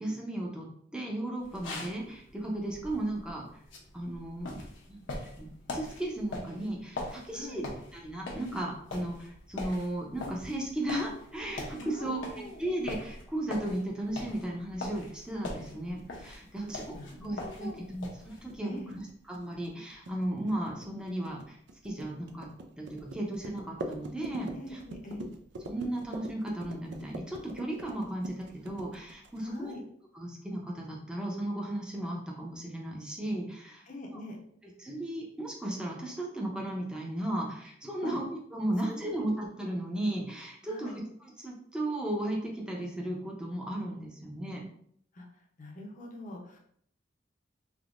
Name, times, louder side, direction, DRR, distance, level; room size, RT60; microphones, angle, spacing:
voice 1, 0.0-3.4 3.9-4.6 4.9-5.0 5.4-16.9 17.2-18.8 19.3-21.6 21.8-22.5 22.8-24.8 25.7-29.7 30.1-33.8 34.1-34.2 34.8-38.2 38.5-41.0 41.4-44.6, right 1 dB, 5° right, -2 dB, 0.6 m, -35 dB
sound 1, 1.4-18.6, left 2 dB, 80° left, 0.8 m, -43 dB
voice 2, 11.8-12.7 16.6-17.9 18.6-18.9 24.5-25.3 29.4-29.8 33.9-34.4 38.0-38.2 38.9-39.1 40.7-41.0 45.1-45.3 45.6-46.6, left 1 dB, 45° left, 1 dB, 0.7 m, -43 dB
sound 2, 16.0-29.7, right 1 dB, 65° right, 0.4 m, -44 dB
3.5 x 2.7 x 2.5 m, 0.64 s
head